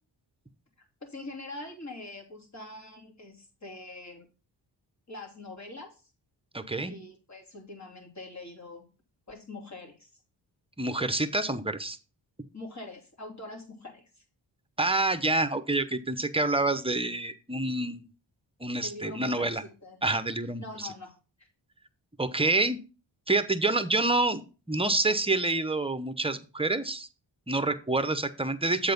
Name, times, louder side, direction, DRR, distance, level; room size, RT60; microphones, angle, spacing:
voice 1, 1.0-4.3 5.1-6.1 6.9-8.8 9.3-10.1 12.5-14.2 18.8-20.0 20.6-21.5, left 2 dB, 35° left, 1 dB, 3.0 m, -44 dB
voice 2, 6.5-6.9 10.8-12.0 14.8-18.0 18.6-19.6 20.0-20.9 22.2-22.8 23.3-24.4 24.7-27.1 27.5-28.9, right 2 dB, 10° right, 11 dB, 0.9 m, -27 dB
7.6 x 4.6 x 5.3 m, 0.34 s
cardioid pair, 50°, 46 cm